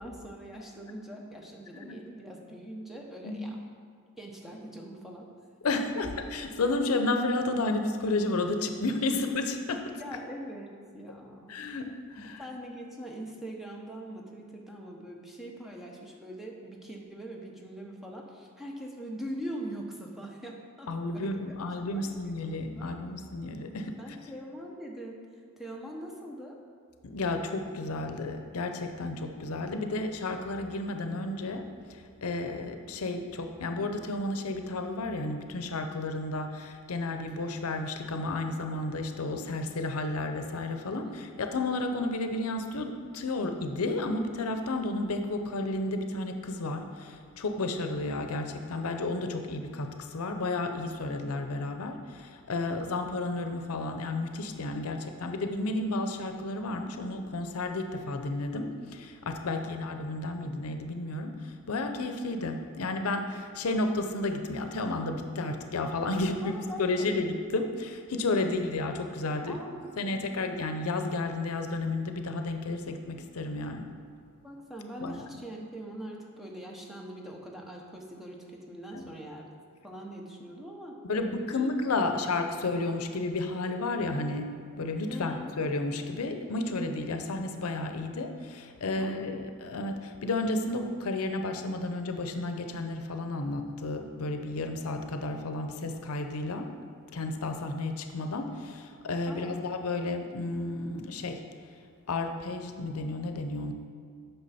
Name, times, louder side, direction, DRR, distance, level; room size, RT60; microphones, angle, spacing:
voice 1, 0.0-3.6 4.2-5.3 5.7-5.8 10.0-11.6 12.2-21.4 21.9-22.1 22.8-23.2 24.0-25.2 25.6-26.6 40.8-41.4 66.4-67.3 69.5-70.5 74.4-79.5 79.8-81.7 82.0-82.3 85.1-85.5 89.0-89.5 99.3-99.7, right 1 dB, ahead, -1 dB, 0.8 m, -42 dB
voice 2, 5.6-10.0 11.5-12.4 20.9-24.0 27.0-69.6 70.0-73.9 75.0-75.2 78.9-79.1 81.1-96.7 97.1-101.4 102.1-103.7, left 2 dB, 90° left, 6 dB, 0.6 m, -32 dB
8.4 x 5.9 x 4.2 m, 2.2 s
head